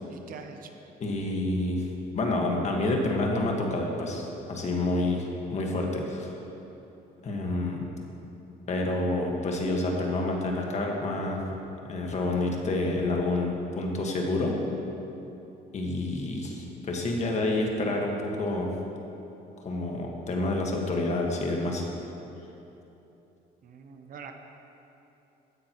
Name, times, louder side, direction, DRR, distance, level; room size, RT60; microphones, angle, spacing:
voice 1, 0.1-0.7 23.6-24.3, right 6 dB, 55° right, 5 dB, 0.9 m, -45 dB
voice 2, 1.0-1.9 2.1-6.3 7.2-7.9 8.7-11.4 11.9-14.5 15.7-18.7 19.6-21.9, left 2 dB, 40° left, 0 dB, 1.7 m, -28 dB
15.0 x 9.5 x 3.1 m, 3.0 s
cardioid pair, 110°, 17 cm